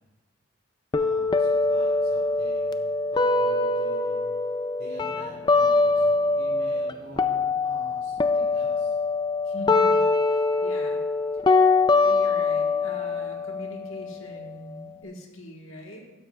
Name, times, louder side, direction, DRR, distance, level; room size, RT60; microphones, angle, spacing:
sound 1, 0.9-6.9 7.2-15.0, left 3 dB, 20° left, 0.3 m, -23 dB
voice 1, 0.9-4.5 4.8-9.0, right 1 dB, 50° right, -6 dB, 3.5 m, -47 dB
voice 2, 9.4-11.1 12.0-16.1, equal, 85° left, 1 dB, 1.4 m, -42 dB
12.5 x 9.9 x 2.4 m, 1.1 s
head